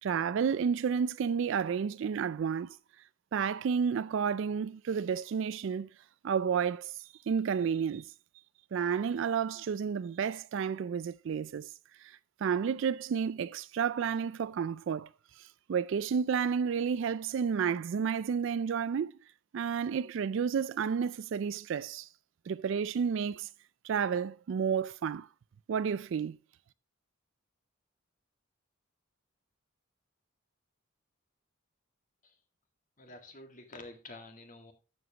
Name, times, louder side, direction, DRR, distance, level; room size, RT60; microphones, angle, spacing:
voice 1, 0.0-2.8 3.3-5.9 6.2-8.1 8.7-11.7 12.0-15.1 15.4-19.1 19.5-22.1 22.5-23.5 23.8-25.3 25.7-26.4, right 7 dB, 65° right, 0.3 m, -31 dB
voice 2, 33.0-34.7, left 2 dB, 40° left, 1.8 m, -49 dB
12.0 x 7.3 x 2.9 m
head